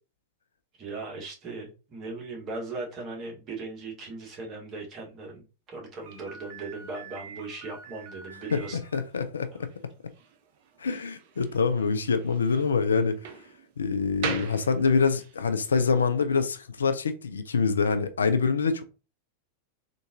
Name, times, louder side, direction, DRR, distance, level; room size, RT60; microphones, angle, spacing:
voice 1, 0.8-5.4 5.7-8.8 9.5-9.6, right 3 dB, 30° right, 1.3 m, -38 dB
Slam, 6.0-15.4, right 6 dB, 50° right, 0.5 m, -42 dB
voice 2, 8.5-9.7 10.8-13.2 13.8-18.8, left 5 dB, 70° left, 0.3 m, -25 dB
3.6 x 2.6 x 2.6 m
figure-of-eight pair, 90°, 0 cm